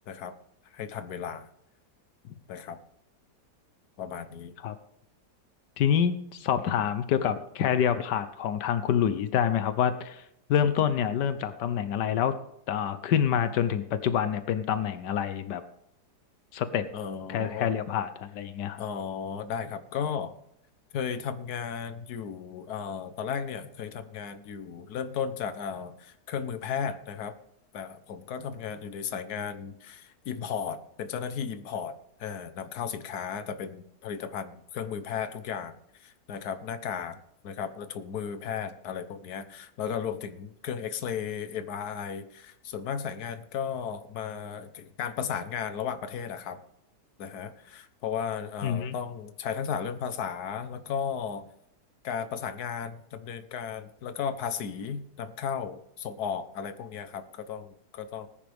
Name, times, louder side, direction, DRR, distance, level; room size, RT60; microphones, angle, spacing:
voice 1, 0.7-1.5 2.5-2.8 4.0-4.5 16.9-17.7 18.8-20.3 20.9-27.4 27.7-31.9 32.2-37.2 37.4-46.6 47.2-51.5 52.0-58.3, left 7 dB, 65° left, 10 dB, 1.5 m, -35 dB
voice 2, 5.8-10.2 10.5-12.3 12.7-15.6 16.5-16.9 17.3-18.8 48.6-48.9, left 8 dB, 90° left, 11 dB, 1.5 m, -27 dB
19.0 x 10.0 x 3.5 m, 0.75 s
omnidirectional pair, 1.8 m